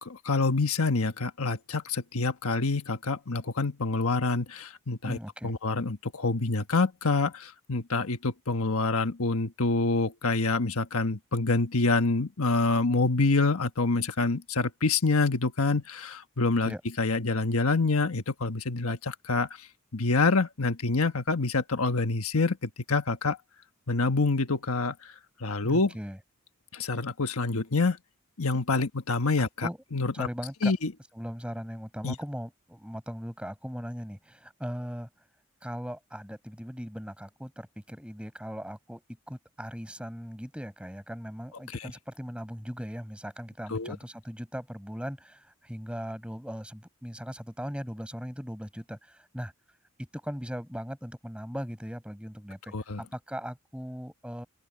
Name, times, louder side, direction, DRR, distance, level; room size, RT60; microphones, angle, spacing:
voice 1, 0.0-5.2 5.4-19.7 19.9-23.4 23.9-25.1 25.4-25.9 26.7-28.0 28.4-30.3 30.6-30.9 32.0-32.1 41.7-41.9 43.7-44.0 52.7-53.0, left 3 dB, 90° left, 1.3 m, -27 dB
voice 2, 5.0-5.6 16.6-16.8 25.6-26.2 29.4-29.8 30.1-30.7 31.1-35.1 35.6-39.0 39.3-49.5 50.0-54.5, equal, 5° right, 7.6 m, -38 dB
open air
head